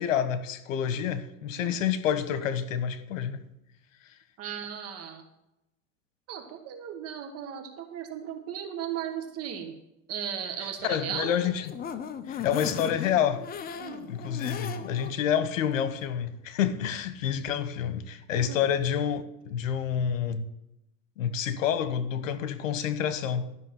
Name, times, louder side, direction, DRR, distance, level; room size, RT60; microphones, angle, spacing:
voice 1, 0.0-3.4 10.8-11.7 12.3-13.4 14.1-20.5 21.2-23.5, left 8 dB, 85° left, 1.2 m, -28 dB
voice 2, 4.4-5.2 6.3-9.7 10.1-11.4 13.8-14.1 18.3-18.6, right 8 dB, 40° right, 1.4 m, -36 dB
sound 1, 11.2-15.1 15.6-15.7 16.0-16.1, left 7 dB, 25° left, 0.8 m, -37 dB
12.5 x 6.0 x 7.6 m
supercardioid pair, 130°, 38 cm